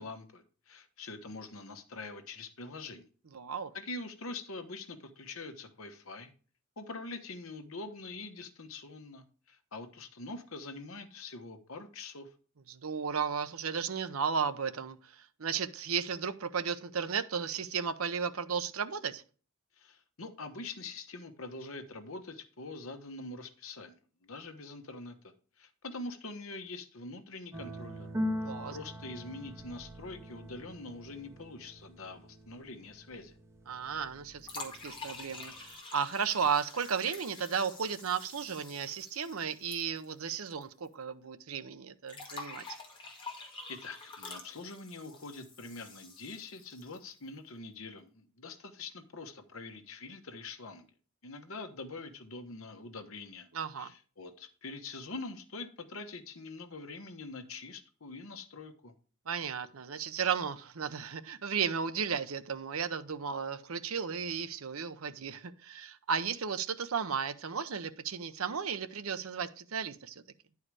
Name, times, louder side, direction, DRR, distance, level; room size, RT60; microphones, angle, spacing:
voice 1, 0.0-3.1 3.7-6.3 6.8-12.3 19.8-24.0 24.2-28.1 28.7-33.3 43.7-50.9 51.2-53.5 53.8-58.9, left 3 dB, 70° left, 1.2 m, -44 dB
voice 2, 3.3-3.7 12.7-15.0 15.4-19.2 28.4-28.7 33.7-42.6 53.5-53.9 59.3-70.1, right 6 dB, 75° right, 0.7 m, -34 dB
sound 1, 27.5-35.7, left 1 dB, 15° right, 1.4 m, -42 dB
sound 2, 34.4-40.6 40.9-41.0 42.1-47.1, left 3 dB, 25° left, 1.9 m, -47 dB
10.0 x 4.7 x 4.7 m
head